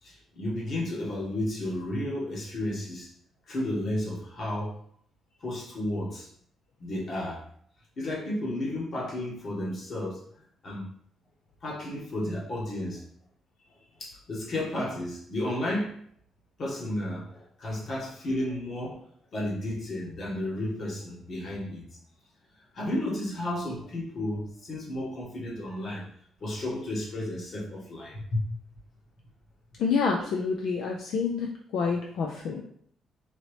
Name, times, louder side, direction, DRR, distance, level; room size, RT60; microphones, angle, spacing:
voice 1, 0.0-3.1 3.5-4.8 5.4-6.3 6.8-7.5 8.0-10.2 10.6-10.9 11.6-13.0 14.0-16.0 16.6-19.0 19.3-21.8 22.7-26.1 26.4-28.5, left 1 dB, 50° left, -3 dB, 1.5 m, -32 dB
voice 2, 29.8-32.6, left 5 dB, 75° left, 1 dB, 0.4 m, -28 dB
4.1 x 2.9 x 3.2 m, 0.62 s
cardioid pair, 90°, 0 cm